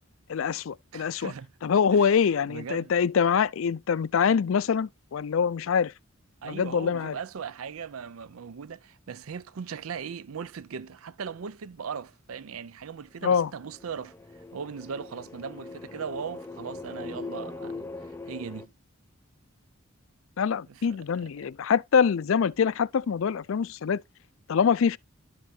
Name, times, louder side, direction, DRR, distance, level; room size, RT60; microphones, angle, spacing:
voice 1, 0.3-1.3 1.6-5.9 6.4-7.2 13.2-13.5 20.4-24.0 24.5-25.0, left 6 dB, 70° left, 0.4 m, -24 dB
voice 2, 0.9-1.5 1.9-2.1 2.5-2.9 6.4-14.1 14.5-18.7 20.7-21.5, right 6 dB, 85° right, 0.5 m, -39 dB
sound 1, 13.5-18.7, left 3 dB, 10° left, 0.5 m, -41 dB
11.5 x 5.5 x 2.7 m
head